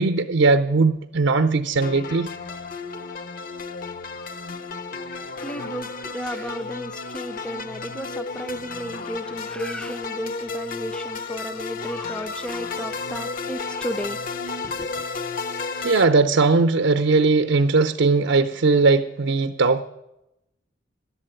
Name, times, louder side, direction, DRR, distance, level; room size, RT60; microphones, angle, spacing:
voice 1, 0.0-2.3 15.8-19.8, right 3 dB, 80° right, 0.5 m, -19 dB
sound 1, 1.8-16.1, left 4 dB, 50° left, 0.6 m, -32 dB
voice 2, 5.4-15.1, equal, 5° left, 0.4 m, -34 dB
11.5 x 8.3 x 8.8 m
head